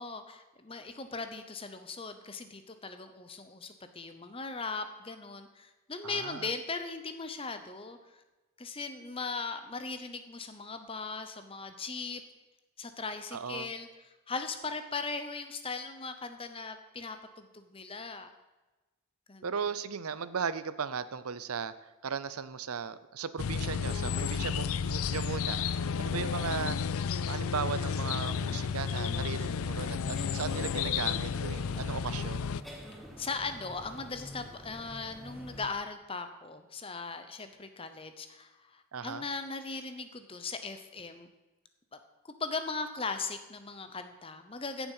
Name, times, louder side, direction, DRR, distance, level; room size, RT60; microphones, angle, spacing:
voice 1, 0.0-8.0 8.6-12.2 12.8-13.9 14.3-18.3 19.3-19.5 33.2-41.3 41.9-42.0 42.2-44.9, left 4 dB, 25° left, 9 dB, 0.9 m, -39 dB
voice 2, 6.0-6.5 13.3-13.7 19.4-25.6 26.0-26.8 27.3-32.5 38.9-39.3, right 6 dB, 85° right, 14 dB, 0.6 m, -37 dB
sound 1, 23.4-32.6, left 6 dB, 75° left, 0.4 m, -32 dB
sound 2, 28.3-35.7, left 1 dB, ahead, 1.4 m, -48 dB
15.5 x 7.2 x 5.7 m, 1.1 s
head